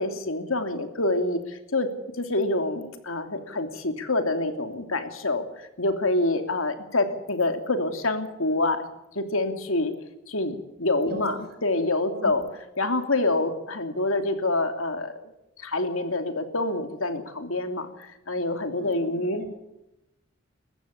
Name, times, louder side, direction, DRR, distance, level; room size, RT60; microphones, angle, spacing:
voice 1, 0.0-1.9 2.2-8.8 9.1-9.9 10.3-11.3 11.6-12.4 12.8-15.2 15.6-19.4, left 2 dB, 80° left, 7 dB, 2.9 m, -26 dB
voice 2, 11.0-11.6 12.0-12.5 18.8-19.5, right 1 dB, 50° right, 5 dB, 6.6 m, -39 dB
21.5 x 15.5 x 8.4 m, 0.93 s
head